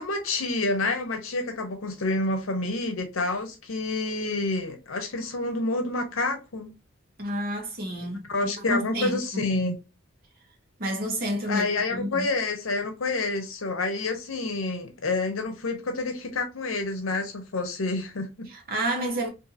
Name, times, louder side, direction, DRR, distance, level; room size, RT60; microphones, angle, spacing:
voice 1, 0.0-6.7 8.3-9.7 11.5-18.5, left 2 dB, 80° left, 0.7 m, -28 dB
voice 2, 7.2-9.5 10.8-12.3 18.5-19.3, equal, 45° right, 0.9 m, -30 dB
2.7 x 2.5 x 2.5 m
head